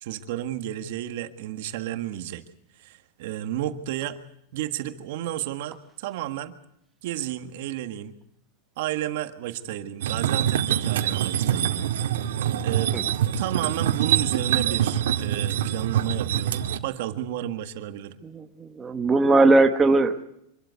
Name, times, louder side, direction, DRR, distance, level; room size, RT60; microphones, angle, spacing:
voice 1, 0.0-2.4 2.8-4.2 4.5-6.5 7.0-8.1 8.8-12.3 12.6-12.9 13.4-18.2, right 12 dB, 50° right, 9 dB, 1.6 m, -32 dB
sound 1, 10.0-16.8, right 10 dB, 85° right, 2.1 m, -25 dB
voice 2, 18.2-20.2, right 2 dB, 10° right, 5 dB, 1.0 m, -20 dB
25.5 x 12.5 x 9.4 m, 0.76 s
supercardioid pair, 180°, 0 cm